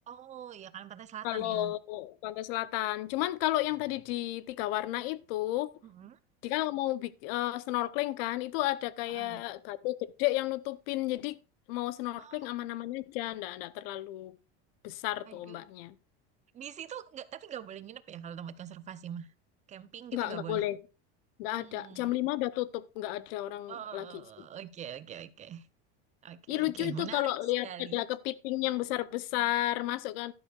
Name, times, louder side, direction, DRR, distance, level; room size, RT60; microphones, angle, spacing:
voice 1, 0.1-1.7 5.8-6.2 9.1-9.4 12.1-12.4 15.3-15.6 16.5-19.3 19.7-20.6 21.5-22.1 23.7-25.7 26.2-27.3 27.6-28.1, right 9 dB, 25° right, 0.6 m, -43 dB
voice 2, 1.2-5.7 6.4-11.4 11.7-14.4 14.8-15.9 20.1-20.8 21.4-24.0 26.5-27.7 27.9-30.3, left 16 dB, 70° left, 0.7 m, -32 dB
12.0 x 11.0 x 2.4 m
supercardioid pair, 150°, 31 cm